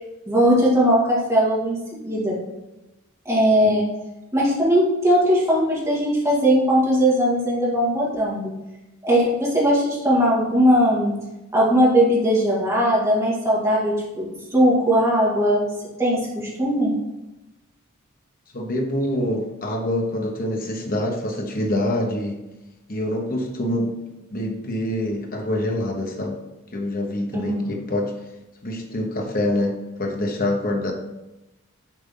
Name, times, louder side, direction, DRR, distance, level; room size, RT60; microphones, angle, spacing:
voice 1, 0.3-1.8 2.0-2.4 3.3-3.8 4.3-8.5 9.0-11.2 11.5-15.6 16.0-16.9 27.3-27.7, equal, 15° right, -7 dB, 2.2 m, -19 dB
voice 2, 18.5-22.4 22.9-24.0 24.3-26.4 26.7-28.1 28.6-30.9, left 1 dB, 40° left, 2 dB, 1.1 m, -25 dB
7.5 x 4.3 x 3.9 m, 0.99 s
head